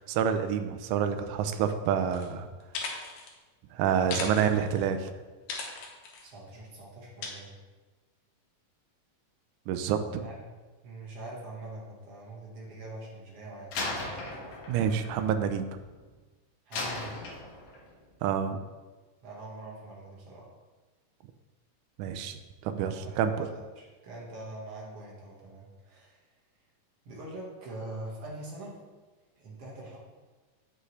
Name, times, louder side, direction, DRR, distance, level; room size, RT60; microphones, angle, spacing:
voice 1, 0.0-2.5 3.8-5.1 9.7-10.2 14.7-15.8 18.2-18.6 22.0-23.5, right 8 dB, 80° right, 8 dB, 1.9 m, -28 dB
sound 1, 2.1-2.3 2.6-3.3 4.0-4.9 5.5-6.3 7.2-7.3, left 4 dB, 85° left, 2.7 m, -37 dB
voice 2, 6.2-7.5 10.2-10.4 10.8-13.8 16.7-17.3 19.2-20.5 23.0-26.2 27.0-28.8 29.4-30.0, right 2 dB, 50° right, -4 dB, 2.2 m, -43 dB
Slam, 13.7-16.1 16.7-18.0, left 2 dB, 60° left, 1.9 m, -37 dB
8.1 x 6.4 x 3.2 m, 1.3 s
omnidirectional pair, 3.9 m